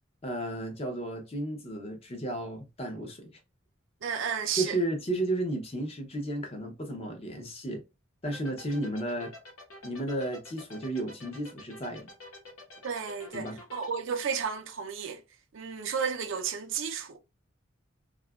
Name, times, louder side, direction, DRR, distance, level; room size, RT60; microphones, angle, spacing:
voice 1, 0.2-3.3 4.6-7.8 8.2-9.3 9.8-12.1 13.3-13.6, right 1 dB, 30° left, 0.6 m, -33 dB
voice 2, 4.0-4.8 12.8-15.2 15.5-17.2, right 6 dB, 65° right, 0.4 m, -32 dB
sound 1, 8.2-13.9, left 2 dB, 85° left, 0.9 m, -47 dB
2.7 x 2.3 x 2.3 m
head